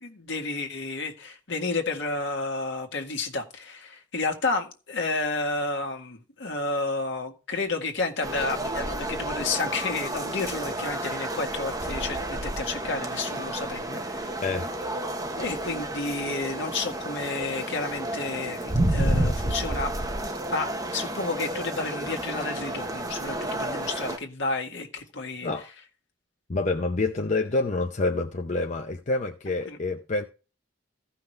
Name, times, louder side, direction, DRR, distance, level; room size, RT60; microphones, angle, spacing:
voice 1, 0.0-14.3 15.4-19.9 20.5-25.5 29.7-29.8, left 3 dB, 60° left, 1.9 m, -31 dB
sound 1, 8.2-24.2, right 1 dB, 20° right, 1.2 m, -31 dB
voice 2, 26.5-30.2, left 3 dB, 40° left, 0.7 m, -27 dB
15.5 x 5.8 x 3.3 m
head